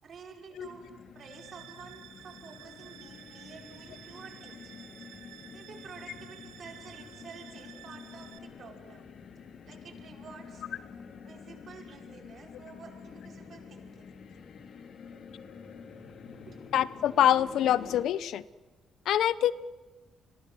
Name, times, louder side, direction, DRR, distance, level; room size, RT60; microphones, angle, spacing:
voice 1, 0.0-4.9 5.5-9.0 9.7-10.6 11.2-14.2 16.5-16.6, right 5 dB, 55° right, 4 dB, 5.5 m, -50 dB
sound 1, 0.6-18.0, left 6 dB, 60° left, 2.8 m, -48 dB
sound 2, 1.2-8.4, right 13 dB, 90° right, 1.5 m, -52 dB
voice 2, 16.7-18.4 19.1-19.5, left 11 dB, 75° left, 18 dB, 0.8 m, -25 dB
28.5 x 21.5 x 7.8 m, 1.2 s
cardioid pair, 90°, 0 cm